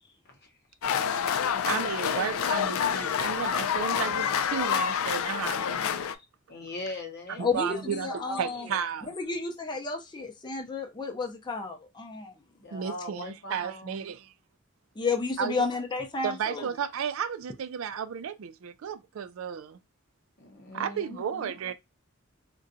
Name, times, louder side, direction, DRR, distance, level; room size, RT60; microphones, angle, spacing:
sound 1, 0.8-6.1, left 8 dB, 90° left, 0.4 m, -28 dB
voice 1, 1.6-5.8 7.4-8.1 8.4-9.1 12.7-14.3 15.4-15.6 16.2-19.8 20.7-21.7, right 7 dB, 75° right, 0.4 m, -33 dB
voice 2, 6.5-8.8 12.5-14.1 20.4-21.5, left 2 dB, 50° left, 0.8 m, -41 dB
voice 3, 7.4-8.7 9.1-12.3 15.0-16.7, left 4 dB, 20° left, 0.5 m, -31 dB
3.8 x 2.2 x 2.6 m
head